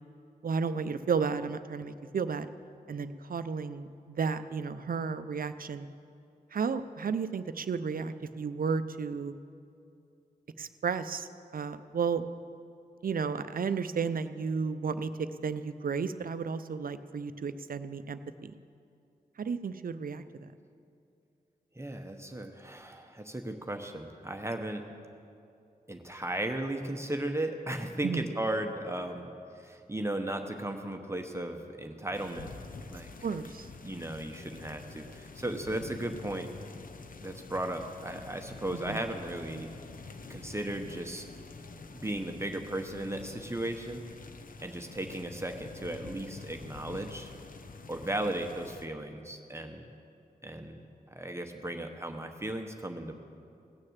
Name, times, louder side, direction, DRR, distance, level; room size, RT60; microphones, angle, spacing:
voice 1, 0.4-2.5 2.9-5.9 6.5-9.3 10.6-12.2 13.0-15.1 15.4-18.5 19.4-20.2 28.0-28.3 33.2-33.7 38.9-39.0, right 5 dB, 65° right, 12 dB, 0.6 m, -33 dB
voice 2, 21.7-24.9 25.9-29.3 29.6-32.5 32.9-33.1 33.8-36.5 37.2-39.7 40.3-41.2 41.9-44.0 44.6-47.3 47.9-49.8 50.4-50.8 51.1-53.1, right 1 dB, 15° right, 4 dB, 1.0 m, -36 dB
sound 1, 32.1-48.9, left 4 dB, 60° left, 0.6 m, -47 dB
17.5 x 6.5 x 7.4 m, 2.5 s
cardioid pair, 50°, 16 cm